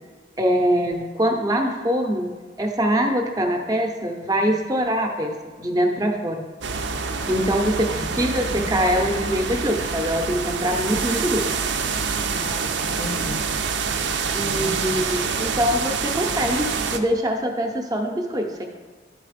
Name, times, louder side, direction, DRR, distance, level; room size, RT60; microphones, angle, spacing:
voice 1, 0.4-2.3 2.6-6.5 7.3-11.5 14.3-18.7, equal, 20° right, 3 dB, 0.6 m, -23 dB
sound 1, 6.6-17.0, right 5 dB, 80° right, 0.6 m, -26 dB
voice 2, 7.2-7.5 12.3-13.5 14.4-15.0, left 2 dB, 30° left, 8 dB, 0.5 m, -36 dB
11.0 x 4.0 x 5.0 m, 1.5 s
head